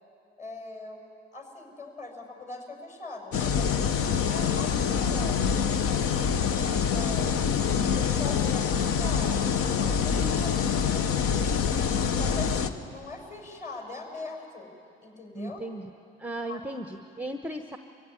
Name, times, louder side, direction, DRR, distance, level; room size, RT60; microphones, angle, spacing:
voice 1, 0.4-1.0 1.3-3.8 4.2-7.4 7.8-11.6 12.1-14.7 15.0-15.6 16.5-16.6, left 3 dB, 25° left, 2 dB, 6.9 m, -42 dB
sound 1, 3.3-12.7, left 7 dB, 50° left, 1.1 m, -25 dB
voice 2, 10.2-10.5 15.3-15.9 16.2-17.8, right 1 dB, 5° right, 7 dB, 1.0 m, -36 dB
25.0 x 15.5 x 9.8 m, 2.7 s
hypercardioid pair, 65°, 30 cm